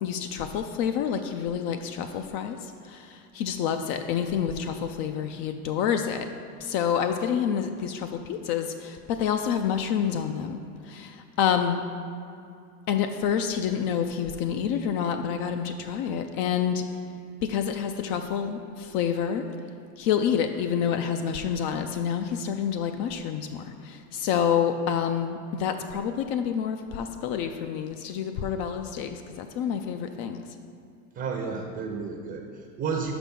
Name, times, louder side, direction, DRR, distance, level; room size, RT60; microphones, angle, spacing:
voice 1, 0.0-2.6 2.8-6.3 6.6-10.6 10.9-11.8 12.9-16.9 17.5-19.4 20.0-30.4, left 8 dB, 50° left, 6 dB, 0.5 m, -28 dB
voice 2, 31.1-33.1, right 5 dB, 25° right, 2 dB, 0.6 m, -32 dB
6.0 x 4.9 x 5.4 m, 2.5 s
supercardioid pair, 110°, 45 cm